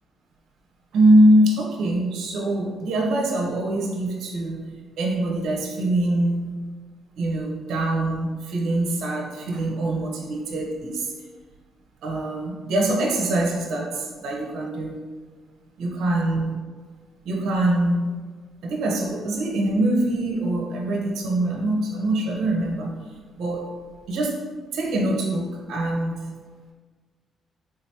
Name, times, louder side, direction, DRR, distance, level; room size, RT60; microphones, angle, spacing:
voice 1, 0.9-4.6 5.0-6.6 7.2-11.1 12.0-15.0 15.8-16.6 17.2-18.2 18.6-22.9 23.4-23.7 24.1-24.4 24.7-26.3, right 1 dB, 80° right, 0 dB, 0.7 m, -23 dB
3.7 x 3.2 x 2.8 m, 1.5 s
cardioid pair, 90°, 0 cm